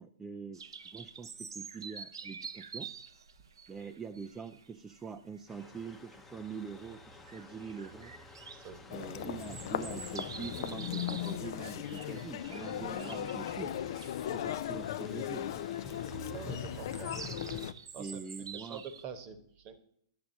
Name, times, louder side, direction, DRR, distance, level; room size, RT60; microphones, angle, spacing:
voice 1, 0.0-2.9 3.7-8.2 8.9-13.8 14.2-15.5 18.0-18.8, right 5 dB, 10° right, 5 dB, 0.4 m, -44 dB
sound 1, 0.5-19.0, right 6 dB, 75° right, 0.6 m, -48 dB
sound 2, 5.5-17.6, left 3 dB, 10° left, 0.8 m, -49 dB
voice 2, 8.5-9.1 16.3-17.2 17.9-18.2 18.5-19.8, right 7 dB, 35° right, 9 dB, 1.1 m, -46 dB
Human voice, 8.9-17.7, left 11 dB, 55° left, 0.4 m, -38 dB
10.5 x 6.8 x 2.7 m, 0.67 s
hypercardioid pair, 120°, 2 cm